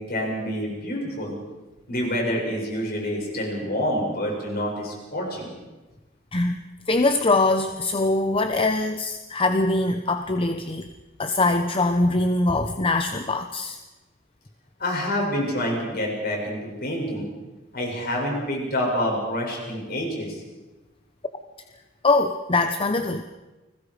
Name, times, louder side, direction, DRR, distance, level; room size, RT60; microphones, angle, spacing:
voice 1, 0.0-1.3 1.9-5.5 14.8-17.3 17.7-20.4, equal, 50° left, -1 dB, 7.5 m, -27 dB
voice 2, 6.9-10.9 11.2-13.8 22.0-23.2, left 2 dB, 30° left, 8 dB, 0.9 m, -22 dB
29.5 x 21.0 x 5.0 m, 1.1 s
head